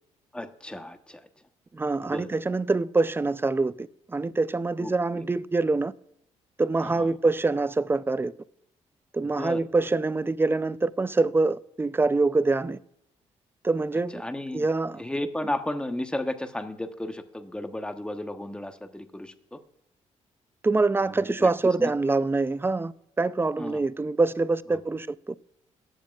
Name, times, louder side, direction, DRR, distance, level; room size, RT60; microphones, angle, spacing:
voice 1, 0.3-1.3 2.0-2.3 4.8-5.3 6.8-7.1 9.4-9.6 14.1-14.7 15.0-19.6 21.0-21.9 23.6-23.8 24.7-24.8, left 1 dB, 5° left, 1.1 m, -34 dB
voice 2, 1.7-5.9 6.6-8.3 9.1-12.8 13.6-14.2 14.5-15.0 15.4-15.5 20.6-22.9 23.2-25.3, right 3 dB, 15° right, 0.5 m, -25 dB
17.5 x 7.3 x 2.4 m
supercardioid pair, 70°, 13 cm